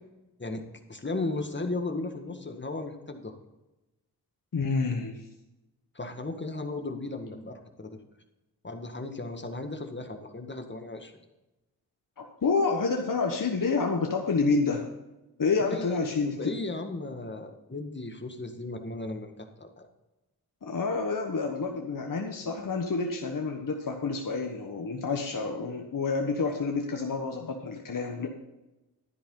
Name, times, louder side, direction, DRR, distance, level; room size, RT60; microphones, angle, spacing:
voice 1, 0.9-3.4 6.0-8.0 8.6-11.1 15.6-16.1 16.4-19.9, left 2 dB, 30° left, 5 dB, 1.8 m, -35 dB
voice 2, 4.5-5.2 12.2-14.9 15.4-16.5 20.6-28.3, left 4 dB, 55° left, 2 dB, 1.3 m, -28 dB
11.5 x 10.0 x 3.9 m, 1.0 s
cardioid pair, 40°, 39 cm